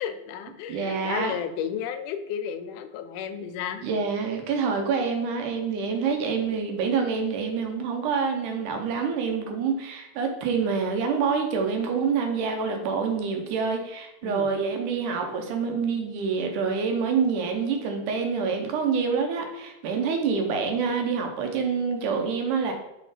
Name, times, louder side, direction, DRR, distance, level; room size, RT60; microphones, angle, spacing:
voice 1, 0.0-3.8 14.2-14.5, left 8 dB, 85° left, 9 dB, 2.0 m, -33 dB
voice 2, 0.7-1.3 3.8-22.7, right 5 dB, 80° right, 4 dB, 2.4 m, -26 dB
5.1 x 4.3 x 4.9 m, 0.90 s
omnidirectional pair, 3.7 m